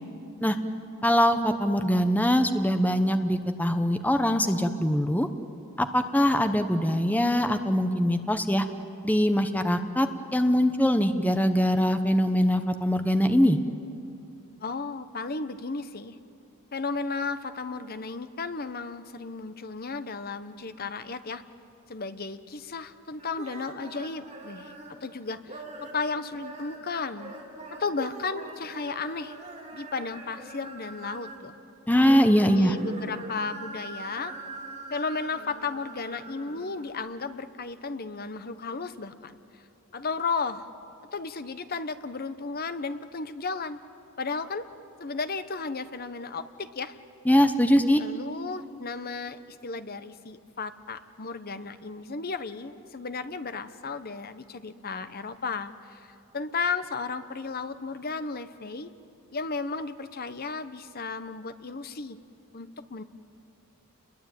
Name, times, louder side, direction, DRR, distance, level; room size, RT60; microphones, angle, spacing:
voice 1, 1.0-5.3 5.8-8.6 9.0-10.1 10.3-13.6 31.9-32.7 47.3-48.0, equal, 5° left, 8 dB, 0.9 m, -22 dB
voice 2, 14.6-16.2 16.7-21.4 21.9-27.3 27.7-29.4 29.7-31.5 32.5-34.3 34.9-39.6 39.9-40.7 41.1-43.8 44.2-44.7 45.0-47.0 48.0-58.9 59.3-62.2 62.5-63.0, left 4 dB, 45° left, 11 dB, 0.9 m, -34 dB
sound 1, 23.2-25.0 25.4-26.0 26.3-31.5 31.8-36.9, right 2 dB, 30° right, 3.5 m, -42 dB
29.5 x 22.0 x 9.1 m, 2.6 s
head